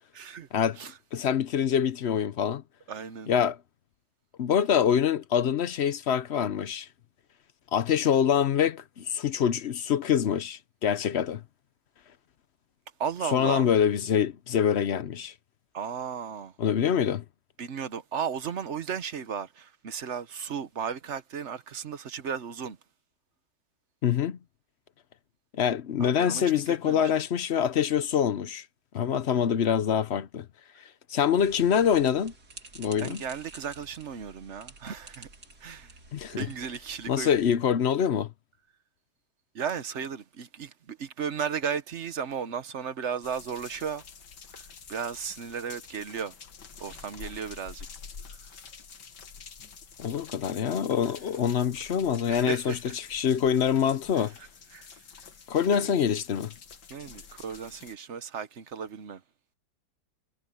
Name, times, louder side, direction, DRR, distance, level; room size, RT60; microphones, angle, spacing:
voice 1, 0.1-0.5 0.8-1.0 2.9-3.3 13.0-13.7 15.7-16.5 17.6-22.8 26.0-27.1 33.0-35.3 35.6-36.0 36.3-37.4 39.5-44.0 44.5-46.3 46.8-47.9 48.3-48.5 52.3-53.0 54.2-55.0 55.7-55.9 56.9-59.2, right 7 dB, 50° right, 1.1 m, -35 dB
voice 2, 1.1-2.6 3.3-3.6 4.4-6.9 7.7-11.4 13.3-15.3 16.6-17.2 24.0-24.4 25.5-28.6 28.9-30.5 31.1-32.3 32.8-33.2 36.1-36.5 37.1-38.3 50.0-52.8 53.1-54.3 55.5-56.5, left 8 dB, 55° left, 0.8 m, -25 dB
sound 1, 31.4-37.5, right 3 dB, 65° right, 4.0 m, -50 dB
sound 2, 43.2-58.0, left 6 dB, 90° left, 2.3 m, -48 dB
omnidirectional pair, 1.8 m